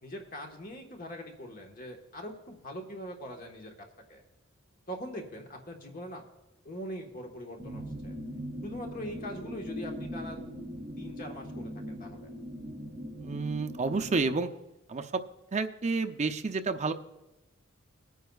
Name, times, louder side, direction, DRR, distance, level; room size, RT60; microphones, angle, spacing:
voice 1, 0.0-3.7 4.1-4.2 4.9-6.2 6.6-8.2 8.6-10.4 11.0-12.3, equal, 45° left, 2 dB, 1.4 m, -42 dB
sound 1, 7.6-14.3, equal, 10° right, 2.4 m, -40 dB
voice 2, 13.2-14.5 14.9-15.2 15.5-16.9, right 3 dB, 35° right, 7 dB, 0.6 m, -30 dB
21.0 x 9.3 x 2.4 m, 0.98 s
head